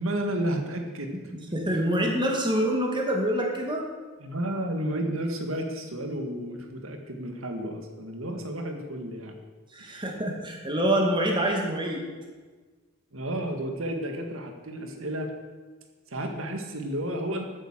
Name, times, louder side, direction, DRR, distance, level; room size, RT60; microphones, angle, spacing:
voice 1, 0.0-1.2 4.2-9.4 9.8-10.0 13.1-15.3 16.1-17.4, right 1 dB, 75° right, 4 dB, 2.0 m, -32 dB
voice 2, 1.3-3.8 9.7-12.0, right 1 dB, 25° right, 0 dB, 2.4 m, -26 dB
13.5 x 9.3 x 6.5 m, 1.4 s
head